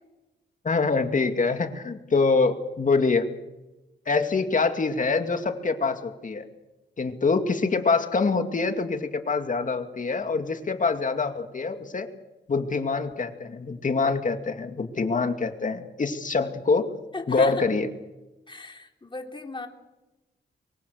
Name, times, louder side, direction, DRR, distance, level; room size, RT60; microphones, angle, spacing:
voice 1, 0.6-3.3 4.1-6.5 7.0-12.1 12.5-16.9 17.3-17.9, left 4 dB, 45° left, 6 dB, 2.5 m, -25 dB
voice 2, 17.1-17.6 18.5-19.7, left 3 dB, 25° left, 3 dB, 3.6 m, -36 dB
24.5 x 23.5 x 6.5 m, 1.0 s
wide cardioid pair, 95°, 18 cm